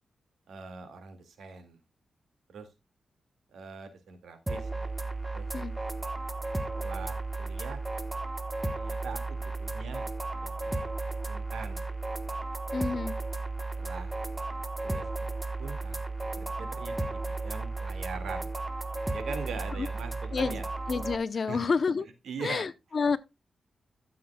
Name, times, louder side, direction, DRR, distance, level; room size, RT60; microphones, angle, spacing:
voice 1, 0.5-1.8 2.5-2.7 3.5-4.9 5.3-5.5 6.7-7.8 8.7-10.9 11.3-11.8 12.7-12.9 13.8-14.2 14.8-15.0 15.4-16.0 16.4-18.5 19.1-20.7 21.5-21.6 22.2-22.7, right 5 dB, 90° right, 2.0 m, -42 dB
sound 1, 4.5-21.2, right 2 dB, 15° right, 1.1 m, -34 dB
voice 2, 12.7-13.2 19.8-19.9 20.3-20.6 20.9-22.1 22.4-23.2, left 5 dB, 50° left, 0.7 m, -29 dB
13.5 x 7.3 x 2.2 m
wide cardioid pair, 105°, 0 cm